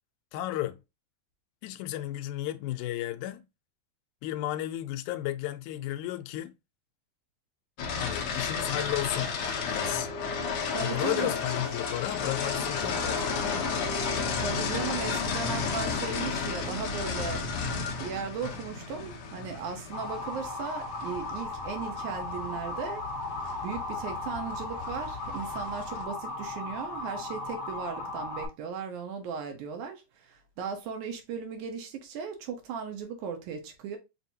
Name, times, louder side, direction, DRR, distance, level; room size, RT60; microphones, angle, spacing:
voice 1, 0.3-0.8 1.6-3.5 4.2-6.5 8.0-10.1 10.8-13.9, left 14 dB, 85° left, 2.0 m, -33 dB
sound 1, 7.8-26.0, left 5 dB, 65° left, 1.4 m, -33 dB
sound 2, 9.8-17.6 18.8-25.7, equal, 45° right, 1.3 m, -47 dB
voice 2, 10.7-11.3 14.4-17.4 18.0-23.0 23.6-34.0, right 6 dB, 80° right, 2.4 m, -37 dB
Motor vehicle (road) / Siren, 19.9-28.5, left 2 dB, 50° left, 1.6 m, -36 dB
5.7 x 2.7 x 2.7 m
omnidirectional pair, 3.5 m